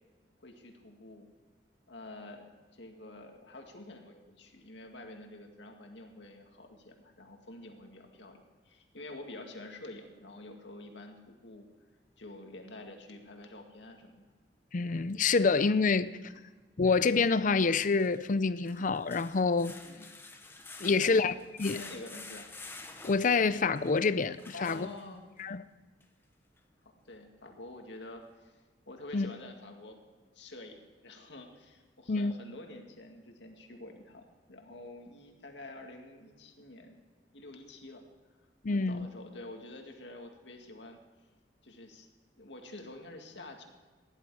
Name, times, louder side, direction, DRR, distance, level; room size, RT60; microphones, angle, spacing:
voice 1, 0.4-1.3 1.9-11.7 12.2-14.3 19.8-20.1 20.9-21.2 21.6-22.5 24.5-25.3 27.0-28.5 28.9-30.0 30.3-37.0 37.3-38.0 38.7-41.0 41.6-42.1 42.4-43.6, left 2 dB, 70° left, 2.1 m, -48 dB
voice 2, 14.7-16.1 16.8-19.8 20.8-21.3 21.6-21.8 23.0-24.9 25.4-25.6 29.1-29.3 32.1-32.3 38.6-39.1, left 4 dB, 45° left, 0.5 m, -27 dB
sound 1, 15.3-15.4 17.8-25.4 26.0-26.1 26.6-26.7, left 3 dB, 15° left, 1.0 m, -49 dB
16.0 x 11.0 x 4.8 m
head